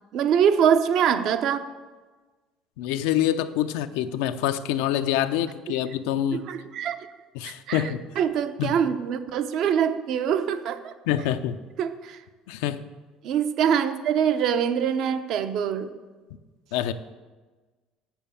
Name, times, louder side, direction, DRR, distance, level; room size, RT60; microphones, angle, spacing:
voice 1, 0.1-1.7 5.7-5.8 6.3-7.1 7.4-10.9 11.8-12.2 13.2-15.9, right 8 dB, 60° right, 10 dB, 0.7 m, -24 dB
voice 2, 2.8-6.4 7.4-8.0 8.6-8.7 11.1-11.6 12.5-12.8 16.7-16.9, left 11 dB, 90° left, 9 dB, 0.5 m, -26 dB
7.3 x 7.2 x 7.1 m, 1.3 s
cardioid pair, 115°, 0 cm